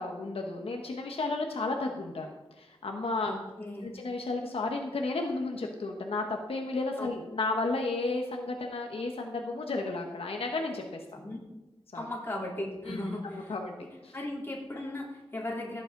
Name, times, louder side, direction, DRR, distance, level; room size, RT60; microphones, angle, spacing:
voice 1, 0.0-3.3 3.8-11.0 11.9-12.0 12.9-13.7 14.0-14.2, left 3 dB, 80° left, 2 dB, 1.2 m, -33 dB
voice 2, 3.2-3.9 7.0-7.1 11.1-11.4 11.9-13.6 14.1-15.8, left 1 dB, 25° left, -4 dB, 3.6 m, -37 dB
16.0 x 8.2 x 3.9 m, 1.1 s
wide cardioid pair, 85°, 10 cm